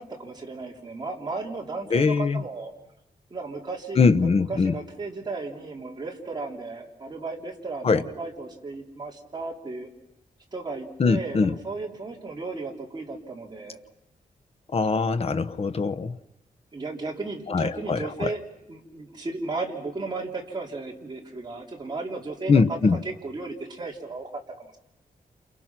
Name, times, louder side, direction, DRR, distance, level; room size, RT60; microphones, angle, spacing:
voice 1, 0.0-2.7 3.3-9.9 10.5-13.8 16.7-18.4 18.7-24.8, right 3 dB, 30° right, 3.5 m, -35 dB
voice 2, 1.9-2.4 4.0-4.7 7.8-8.0 11.0-11.5 14.7-16.2 17.5-18.3 22.5-23.0, left 4 dB, 40° left, 1.0 m, -22 dB
29.0 x 28.0 x 6.1 m
wide cardioid pair, 180°, 15 cm